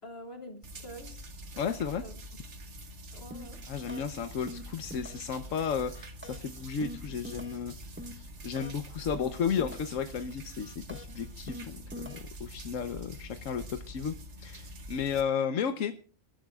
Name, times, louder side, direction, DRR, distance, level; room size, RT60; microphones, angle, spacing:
voice 1, 0.0-1.3 1.9-2.1 3.1-3.6, equal, 50° left, 3 dB, 3.4 m, -46 dB
sound 1, 0.6-15.2, right 1 dB, 65° right, 1.8 m, -45 dB
voice 2, 1.5-2.0 3.7-7.7 8.2-14.1 14.4-15.9, left 7 dB, 90° left, 9 dB, 1.3 m, -33 dB
sound 2, 3.3-3.6 3.9-4.2 4.5-5.4 5.6-8.9 9.1-10.0 10.3-12.5, left 1 dB, 10° right, 1.3 m, -44 dB
29.5 x 13.0 x 2.4 m, 0.38 s
omnidirectional pair, 1.3 m